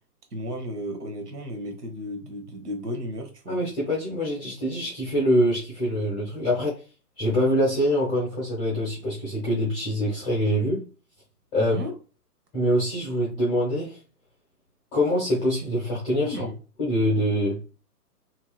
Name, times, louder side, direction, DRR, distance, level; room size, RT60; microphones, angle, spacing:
voice 1, 0.3-3.6 11.6-11.9 16.2-16.6, equal, 75° right, 1.2 m, -34 dB
voice 2, 3.5-6.8 7.2-10.8 11.5-11.8 12.5-14.0 14.9-16.5 16.8-17.6, equal, 10° left, 0.7 m, -24 dB
2.8 x 2.8 x 2.2 m
figure-of-eight pair, 130°, 48 cm